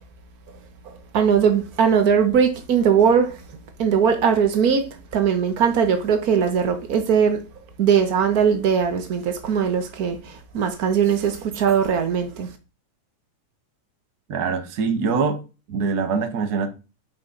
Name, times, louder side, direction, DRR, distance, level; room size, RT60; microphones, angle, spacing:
voice 1, 1.1-3.3 3.8-4.8 5.1-7.4 7.8-12.5, right 7 dB, 80° right, 0.8 m, -20 dB
voice 2, 14.3-15.4 15.7-16.7, right 5 dB, 45° right, 1.3 m, -23 dB
10.5 x 6.1 x 4.0 m
omnidirectional pair, 3.4 m